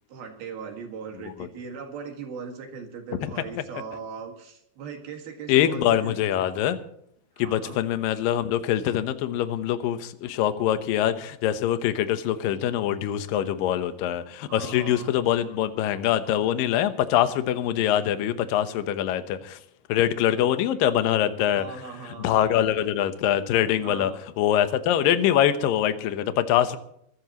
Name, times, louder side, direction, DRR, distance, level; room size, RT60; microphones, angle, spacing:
voice 1, 0.1-6.5 7.4-7.8 14.5-15.1 21.6-22.5 23.8-24.2, right 6 dB, 65° right, 3 dB, 3.5 m, -39 dB
voice 2, 5.5-6.8 7.4-19.6 19.9-21.7 22.2-24.1 24.4-26.8, left 11 dB, 70° left, 10 dB, 2.3 m, -24 dB
24.5 x 13.0 x 3.0 m, 0.72 s
omnidirectional pair, 5.1 m